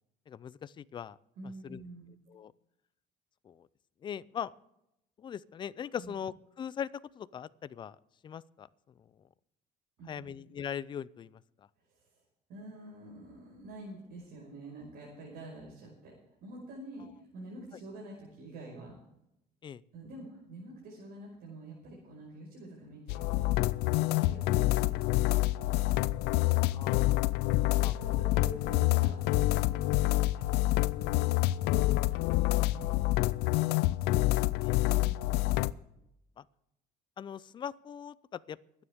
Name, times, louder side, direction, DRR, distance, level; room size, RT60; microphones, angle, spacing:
voice 1, 0.3-1.2 1.6-1.8 2.3-2.5 3.4-3.7 4.0-4.5 5.2-6.9 7.2-8.0 8.2-8.7 9.0-9.1 10.1-11.7 19.6-19.8 24.2-24.3 26.7-27.4 27.8-27.9 34.1-34.3 34.6-34.8 36.4-36.5 37.2-38.6, left 8 dB, 30° left, 18 dB, 0.5 m, -41 dB
voice 2, 1.4-2.1 6.0-6.2 10.0-10.3 11.9-12.2 12.5-16.1 16.4-18.9 19.9-26.0 26.3-26.9 27.4-30.0 30.3-30.5 30.8-31.6 31.9-33.0 34.8-35.4, right 1 dB, 65° right, -3 dB, 5.3 m, -48 dB
sound 1, 23.1-35.7, left 18 dB, 90° left, 0.5 m, -27 dB
24.0 x 9.8 x 3.6 m, 0.81 s
cardioid pair, 150°, 17 cm